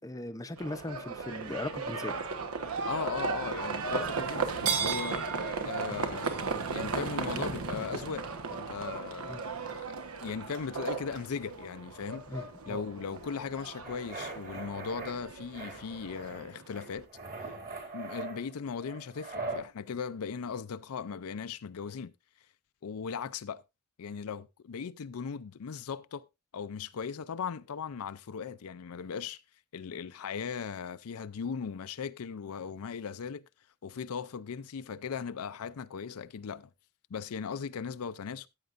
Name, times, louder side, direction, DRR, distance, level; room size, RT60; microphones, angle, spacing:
voice 1, 0.0-2.2 9.3-9.4 12.3-12.8, left 1 dB, 15° left, 0.6 m, -39 dB
Livestock farm animals working animals, 0.6-17.0, right 4 dB, 70° right, 1.2 m, -36 dB
voice 2, 2.9-5.3 5.6-10.0 10.2-17.1 17.9-22.1 22.8-23.6 24.0-26.2 26.5-29.4 29.7-33.4 33.8-36.7 37.1-38.5, left 6 dB, 70° left, 0.5 m, -38 dB
sound 1, 13.8-15.1 15.5-16.4 16.7-19.7, right 3 dB, 40° right, 3.2 m, -41 dB
14.5 x 9.0 x 2.5 m
head